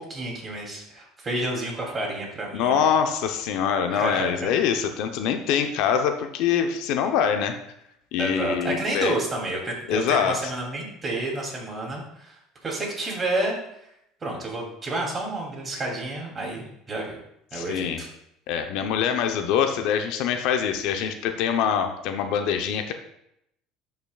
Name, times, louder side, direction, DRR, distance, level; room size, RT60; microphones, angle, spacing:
voice 1, 0.0-2.8 3.9-4.5 8.2-13.6 14.2-17.2 17.5-18.1, right 2 dB, 25° right, -1 dB, 2.8 m, -30 dB
voice 2, 2.5-7.6 8.1-9.1 9.9-10.5 17.5-18.0 18.5-22.9, left 8 dB, 70° left, 6 dB, 0.8 m, -24 dB
11.5 x 5.8 x 2.4 m, 0.77 s
supercardioid pair, 115°, 0 cm